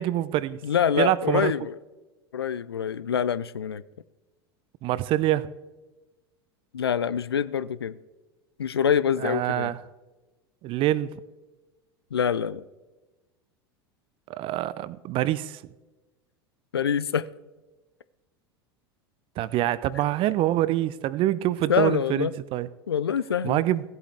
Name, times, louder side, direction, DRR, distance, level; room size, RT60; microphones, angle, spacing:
voice 1, 0.0-0.6 1.0-1.5 4.8-5.5 9.2-9.8 10.6-11.1 14.3-15.6 19.4-22.7 23.4-23.8, right 14 dB, 45° right, 17 dB, 0.5 m, -25 dB
voice 2, 0.6-1.8 2.3-3.8 6.7-8.0 8.6-9.7 12.1-12.6 16.7-17.3 21.7-22.3 22.9-23.6, left 8 dB, 90° left, 17 dB, 0.4 m, -25 dB
15.5 x 8.1 x 3.3 m, 1.1 s
hypercardioid pair, 80°, 13 cm